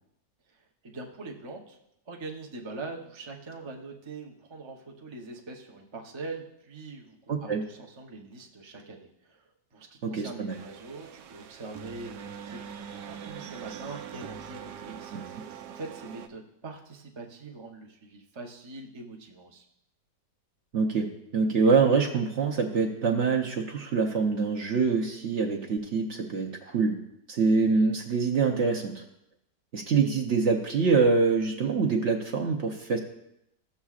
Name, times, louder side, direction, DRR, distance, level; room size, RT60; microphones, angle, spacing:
voice 1, 0.5-1.8 2.0-19.6, right 3 dB, 30° right, 0 dB, 0.5 m, -43 dB
voice 2, 7.3-7.6 10.0-10.6 15.1-15.2 20.7-21.1 21.3-27.0 27.3-29.0 29.7-33.0, right 4 dB, 55° right, 1 dB, 0.9 m, -25 dB
sound 1, 10.5-16.3, right 8 dB, 90° right, 1.3 m, -43 dB
14.5 x 7.1 x 2.4 m, 0.83 s
omnidirectional pair, 1.8 m